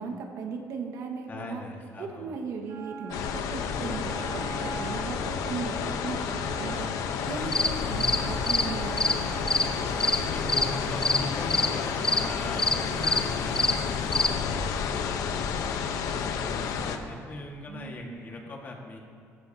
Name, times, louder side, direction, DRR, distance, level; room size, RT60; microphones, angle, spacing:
voice 1, 0.0-1.6 2.0-6.9 7.2-9.4 17.7-18.2, right 5 dB, 70° right, 3 dB, 1.6 m, -37 dB
voice 2, 1.3-2.4 7.5-8.2 10.2-14.4 14.7-19.0, left 2 dB, 35° left, 0 dB, 1.7 m, -40 dB
Wind instrument woodwind instrument, 2.7-12.3, right 6 dB, 45° right, 0.9 m, -45 dB
sound 1, 3.1-17.0, left 6 dB, 90° left, 0.9 m, -31 dB
sound 2, 7.3-14.3, left 2 dB, 10° left, 0.6 m, -27 dB
17.5 x 14.5 x 2.8 m, 2.4 s
cardioid pair, 165°, 6 cm